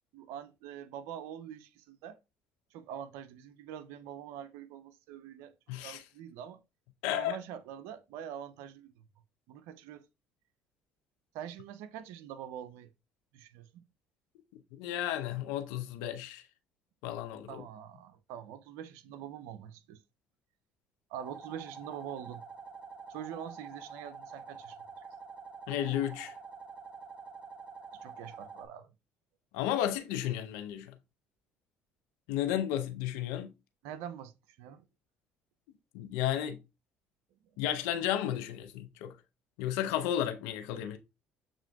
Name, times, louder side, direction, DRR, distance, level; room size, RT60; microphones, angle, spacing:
voice 1, 0.1-2.2 2.7-5.5 5.8-6.6 7.1-9.0 9.5-10.1 11.3-12.9 13.3-13.8 17.5-20.0 21.1-22.4 23.1-24.8 27.9-28.9 33.8-34.8, right 9 dB, 75° right, 0.4 m, -44 dB
voice 2, 5.7-6.0 7.0-7.4 14.7-16.4 17.0-17.6 25.7-26.3 29.5-30.9 32.3-33.5 35.9-36.6 37.6-39.1 39.6-41.0, left 11 dB, 80° left, 0.6 m, -33 dB
sound 1, 21.2-28.7, right 5 dB, 30° right, 1.2 m, -47 dB
7.0 x 2.5 x 2.2 m
hypercardioid pair, 65°, 4 cm